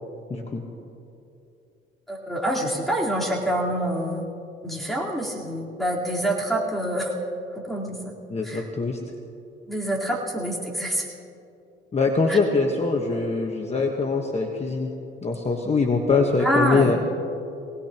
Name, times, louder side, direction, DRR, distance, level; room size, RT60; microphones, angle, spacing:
voice 1, 0.3-0.6 8.3-9.0 11.9-14.9 15.2-17.0, left 4 dB, 35° left, 2 dB, 1.3 m, -23 dB
voice 2, 2.1-4.3 4.6-7.1 7.5-8.2 8.4-8.6 9.7-11.1 12.3-12.4 16.4-16.9, right 1 dB, ahead, -5 dB, 4.0 m, -26 dB
23.5 x 18.5 x 3.0 m, 2.8 s
cardioid pair, 90°, 20 cm